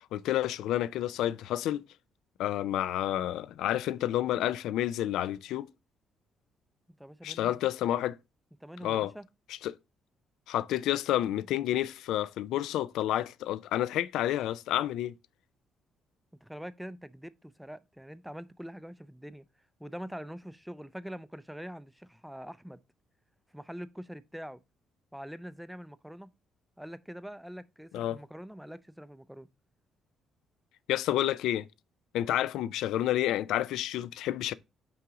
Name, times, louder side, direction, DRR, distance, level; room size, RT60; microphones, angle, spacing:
voice 1, 0.1-1.8 2.4-5.7 7.2-8.2 8.8-9.1 9.6-9.7 10.5-15.1 27.9-28.2 30.9-31.7 32.1-34.5, left 13 dB, 90° left, 0.3 m, -29 dB
voice 2, 6.9-7.6 8.6-9.2 16.4-19.4 19.8-22.8 23.5-24.6 25.1-26.3 26.8-29.5, equal, ahead, 0.3 m, -44 dB
5.7 x 3.8 x 4.7 m
cardioid pair, 135°, 0 cm